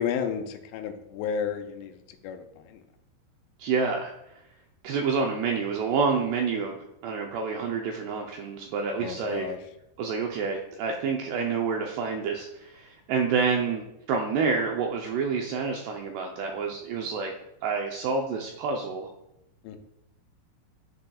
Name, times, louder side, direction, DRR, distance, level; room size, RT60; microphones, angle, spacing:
voice 1, 0.0-1.9 2.2-2.8 9.0-9.6 19.6-19.8, left 7 dB, 90° left, 6 dB, 3.1 m, -32 dB
voice 2, 3.6-4.1 4.8-9.5 10.0-17.3 17.6-19.1, right 5 dB, 80° right, 1 dB, 2.4 m, -28 dB
10.5 x 10.5 x 2.4 m, 0.85 s
omnidirectional pair, 5.6 m